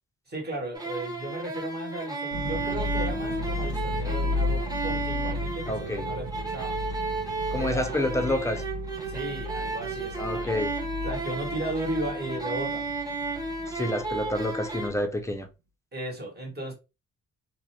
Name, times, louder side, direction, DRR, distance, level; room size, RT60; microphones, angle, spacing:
voice 1, 0.3-6.9 7.5-8.0 9.1-10.6 11.0-12.9 15.9-16.7, right 1 dB, 35° right, 1.2 m, -35 dB
sound 1, 0.7-14.9, right 3 dB, 10° right, 0.8 m, -33 dB
sound 2, 2.3-15.2, left 2 dB, 65° right, 0.6 m, -34 dB
voice 2, 5.7-6.0 7.5-8.6 10.2-10.7 13.7-15.5, left 1 dB, 10° left, 0.5 m, -28 dB
2.5 x 2.1 x 2.8 m
cardioid pair, 90°, 30 cm